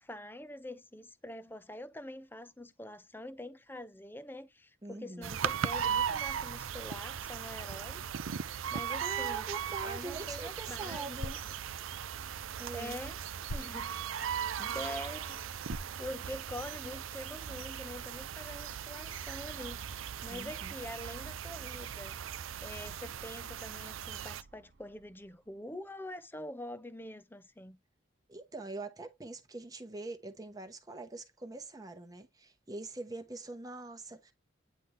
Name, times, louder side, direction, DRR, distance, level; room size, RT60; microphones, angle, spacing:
voice 1, 0.0-9.5 9.8-11.2 11.4-11.5 12.7-13.2 13.5-15.6 16.0-27.8, left 1 dB, 10° left, 0.7 m, -45 dB
voice 2, 4.8-5.3 9.0-11.4 12.6-13.0 14.6-14.7 20.3-20.7 28.3-34.3, right 3 dB, 20° right, 1.0 m, -43 dB
sound 1, 5.2-24.4, right 8 dB, 90° right, 0.6 m, -38 dB
sound 2, 9.9-16.9, left 1 dB, 85° left, 1.1 m, -49 dB
sound 3, 24.3-26.3, right 3 dB, 65° right, 1.0 m, -65 dB
9.4 x 4.0 x 3.3 m
head